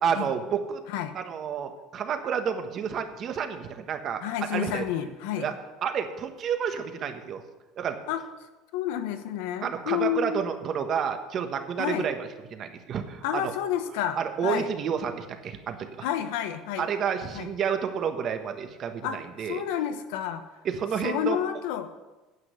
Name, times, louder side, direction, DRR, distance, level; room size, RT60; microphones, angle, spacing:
voice 1, 0.0-0.8 1.1-4.2 4.5-4.8 5.4-5.5 5.8-7.4 7.8-8.0 9.6-13.5 14.1-16.1 16.8-19.6 20.6-21.4, right 7 dB, 40° right, 7 dB, 1.3 m, -30 dB
voice 2, 4.2-5.5 8.1-8.2 8.7-10.4 11.8-12.1 13.2-14.7 16.0-16.9 17.3-17.5 19.0-20.4 21.0-21.9, left 10 dB, 85° left, 10 dB, 1.0 m, -30 dB
9.7 x 7.7 x 7.6 m, 1.1 s
cardioid pair, 135°, 0 cm